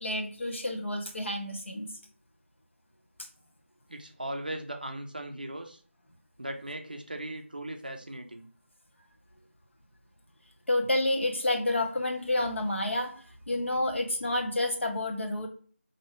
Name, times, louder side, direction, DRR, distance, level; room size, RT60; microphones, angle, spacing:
voice 1, 0.0-1.9 10.7-13.1 13.5-15.5, left 1 dB, 60° left, 2 dB, 0.9 m, -29 dB
voice 2, 3.9-5.8 6.4-8.5, right 1 dB, 40° right, 5 dB, 0.4 m, -38 dB
2.7 x 2.7 x 4.3 m, 0.43 s
figure-of-eight pair, 180°, 7 cm